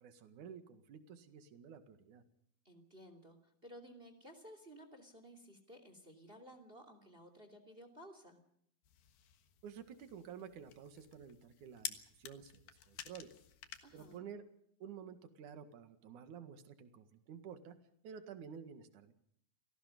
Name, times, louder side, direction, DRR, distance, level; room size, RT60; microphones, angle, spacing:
voice 1, 0.0-2.2 9.6-13.3 13.9-14.4 14.8-17.8 18.0-19.1, right 7 dB, 60° right, 8 dB, 3.1 m, -51 dB
voice 2, 2.6-8.4 13.8-14.3, equal, 15° right, 8 dB, 2.8 m, -56 dB
sound 1, 8.8-14.2, left 10 dB, 90° left, 3.4 m, -51 dB
28.5 x 18.5 x 5.3 m, 0.68 s
omnidirectional pair, 4.1 m